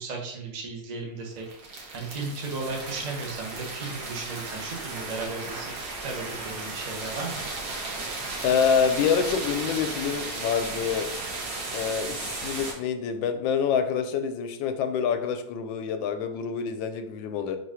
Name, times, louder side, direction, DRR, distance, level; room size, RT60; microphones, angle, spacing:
voice 1, 0.0-1.4 1.9-7.4, right 3 dB, 45° right, 0 dB, 0.5 m, -35 dB
sound 1, 1.3-12.7, right 3 dB, 65° right, 1.6 m, -35 dB
voice 2, 8.4-11.1 11.7-17.6, left 7 dB, 90° left, 8 dB, 1.3 m, -26 dB
4.3 x 2.5 x 4.8 m, 0.77 s
omnidirectional pair, 2.0 m